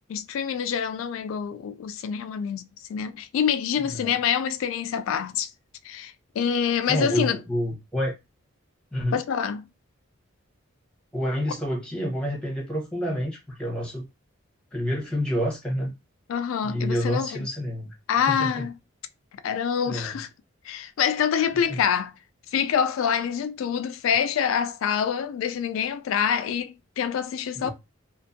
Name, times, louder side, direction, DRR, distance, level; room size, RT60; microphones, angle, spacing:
voice 1, 0.1-5.5 5.8-7.4 9.1-9.6 16.3-17.3 18.1-18.7 19.4-20.3 20.6-22.1 22.5-27.7, left 8 dB, 75° left, 0.3 m, -26 dB
voice 2, 6.9-8.1 8.9-9.2 11.1-14.0 14.7-15.9 16.6-17.9 18.3-18.7 19.9-20.2 21.4-21.8 27.6-27.7, equal, 5° left, 0.8 m, -28 dB
2.5 x 2.4 x 2.5 m
head